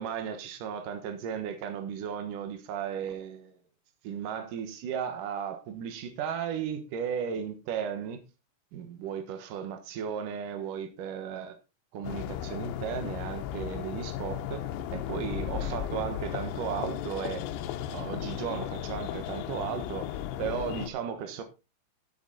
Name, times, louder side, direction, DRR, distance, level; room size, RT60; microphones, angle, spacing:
voice 1, 0.0-3.6 4.0-8.2 8.7-11.5 11.9-14.6 14.9-17.4 17.9-21.4, right 8 dB, 70° right, 2.1 m, -35 dB
sound 1, 12.0-20.9, left 10 dB, 90° left, 3.4 m, -35 dB
13.0 x 8.1 x 4.1 m
omnidirectional pair, 5.7 m